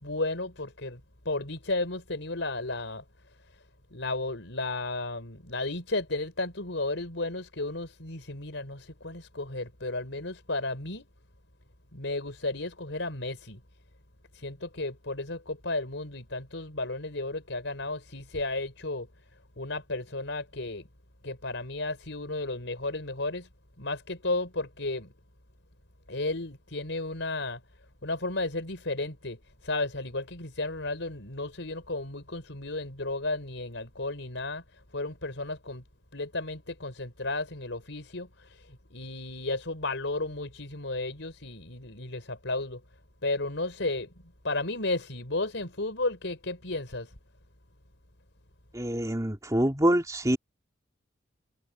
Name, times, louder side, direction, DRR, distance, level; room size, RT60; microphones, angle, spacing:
voice 1, 0.0-3.0 3.5-3.6 3.9-11.1 11.9-13.6 14.3-19.1 19.6-20.9 21.2-23.5 23.8-25.1 26.1-27.6 28.0-35.8 36.1-42.8 43.2-47.1, left 2 dB, 75° left, 4.7 m, -33 dB
voice 2, 48.7-50.4, right 1 dB, 20° right, 2.9 m, -25 dB
head